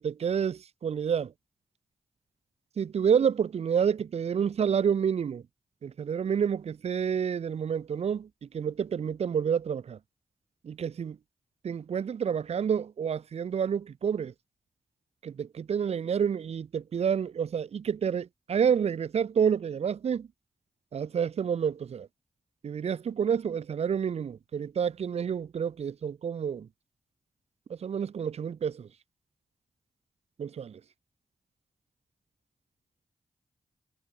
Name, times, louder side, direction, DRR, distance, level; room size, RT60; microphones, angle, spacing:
voice 1, 0.0-1.3 2.8-5.4 5.8-10.0 10.6-11.2 11.6-14.3 15.2-20.3 20.9-22.1 22.6-26.7 27.7-28.9 30.4-30.8, right 7 dB, 70° right, 0.7 m, -29 dB
supercardioid pair, 40°, 11 cm